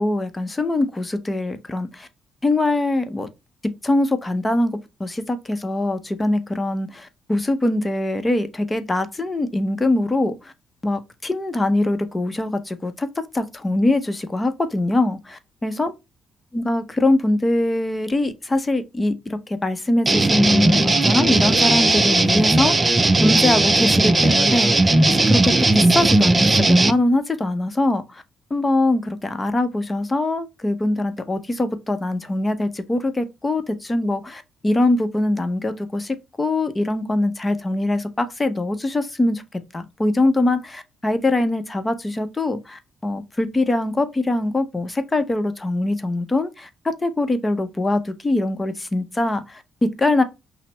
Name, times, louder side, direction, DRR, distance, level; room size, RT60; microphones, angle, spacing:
voice 1, 0.0-2.1 2.4-3.3 3.8-10.5 10.8-13.1 13.3-15.9 16.5-22.9 23.2-28.2 28.5-39.4 39.7-50.2, left 2 dB, 20° left, 0.7 m, -22 dB
sound 1, 20.1-26.9, right 2 dB, 25° right, 0.5 m, -17 dB
5.7 x 2.1 x 3.3 m
cardioid pair, 90°, 0 cm